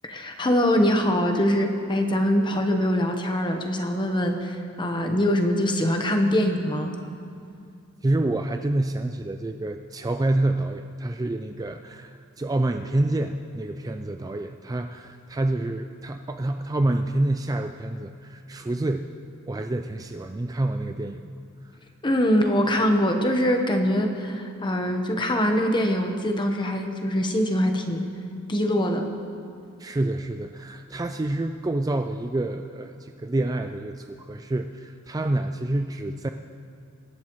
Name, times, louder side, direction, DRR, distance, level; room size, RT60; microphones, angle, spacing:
voice 1, 0.0-6.9 22.0-28.0 28.5-29.1, equal, 20° left, 4 dB, 1.1 m, -23 dB
voice 2, 8.0-19.1 19.5-21.4 21.6-21.8 29.8-36.3, right 2 dB, 15° right, 6 dB, 0.3 m, -27 dB
24.0 x 11.5 x 3.1 m, 2.4 s
head